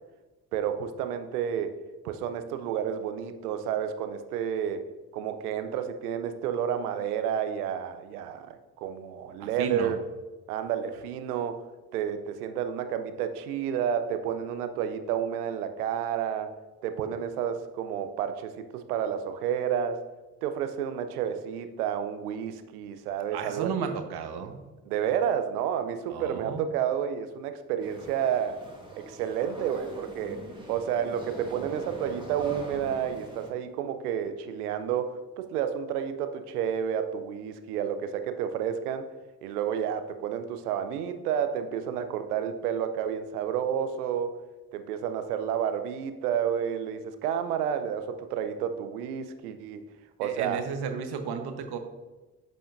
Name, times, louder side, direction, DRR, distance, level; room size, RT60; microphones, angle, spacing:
voice 1, 0.5-1.8 2.0-4.8 5.1-10.0 10.5-11.6 11.9-16.5 16.8-20.0 20.4-23.9 24.9-28.6 29.1-30.4 30.7-39.1 39.4-44.3 44.7-49.9 50.2-50.7, right 8 dB, 85° right, 9 dB, 0.6 m, -30 dB
voice 2, 9.4-10.0 23.3-24.6 26.1-26.6 50.2-51.8, right 6 dB, 60° right, 7 dB, 1.0 m, -34 dB
sound 1, 27.8-33.5, right 1 dB, 10° right, 1.8 m, -43 dB
8.6 x 5.6 x 2.5 m, 1.2 s
hypercardioid pair, 40°, 44 cm